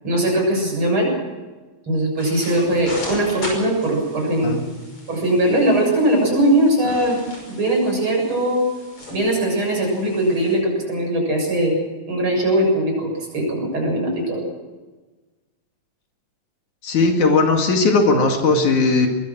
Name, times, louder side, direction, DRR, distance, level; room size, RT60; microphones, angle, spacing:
voice 1, 0.0-1.1 1.9-4.5 5.1-7.1 7.5-8.6 9.1-11.7 12.1-14.4, right 1 dB, 40° right, 0 dB, 8.2 m, -20 dB
sound 1, 2.2-10.6, left 1 dB, 45° left, 6.8 m, -38 dB
voice 2, 16.8-19.1, left 3 dB, 70° left, 3 dB, 3.7 m, -17 dB
23.5 x 21.5 x 6.3 m, 1.2 s
omnidirectional pair, 3.6 m